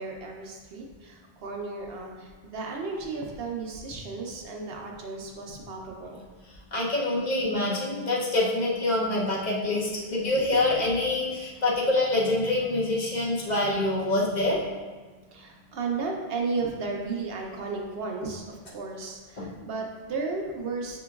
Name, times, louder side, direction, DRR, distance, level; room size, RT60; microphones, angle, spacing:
voice 1, 0.0-6.2 10.3-10.9 15.3-21.0, right 4 dB, 65° right, 0 dB, 0.8 m, -34 dB
voice 2, 6.7-14.6 19.4-19.5, left 2 dB, 45° left, -5 dB, 0.8 m, -26 dB
5.8 x 3.0 x 2.3 m, 1.4 s
omnidirectional pair, 1.2 m